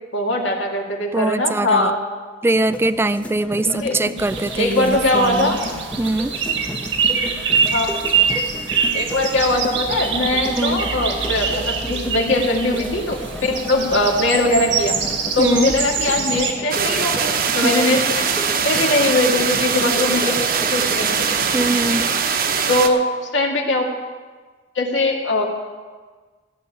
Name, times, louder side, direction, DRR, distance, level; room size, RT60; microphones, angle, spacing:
voice 1, 0.1-2.0 3.6-4.0 4.6-5.6 7.7-7.9 8.9-15.0 15.3-18.2 18.6-20.3 20.7-21.2 22.7-23.0 23.3-23.9 24.8-25.4, left 2 dB, 80° left, 0 dB, 2.1 m, -20 dB
voice 2, 1.1-1.9 2.4-5.6 6.0-6.3 10.5-10.9 15.4-15.7 17.6-18.0 21.5-22.1, right 2 dB, 15° right, 15 dB, 0.3 m, -22 dB
sound 1, 2.5-22.1, equal, 5° left, 1.0 m, -33 dB
sound 2, 4.2-16.5, right 6 dB, 80° right, 1.5 m, -24 dB
sound 3, 16.7-22.9, right 6 dB, 50° right, 0.9 m, -21 dB
14.0 x 6.5 x 9.9 m, 1.4 s
head